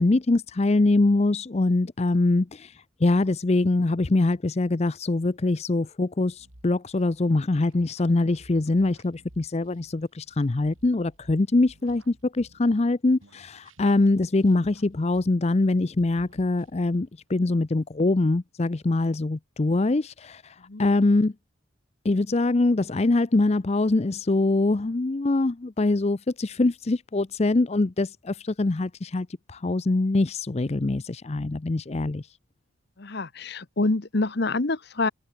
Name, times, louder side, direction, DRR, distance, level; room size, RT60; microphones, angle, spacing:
voice 1, 0.0-21.3 22.0-32.4, left 2 dB, 30° left, 0.5 m, -23 dB
sound 1, 6.4-12.9 13.2-15.7 16.0-17.0, right 1 dB, 80° right, 4.4 m, -55 dB
voice 2, 33.0-35.1, left 2 dB, 50° left, 1.0 m, -26 dB
head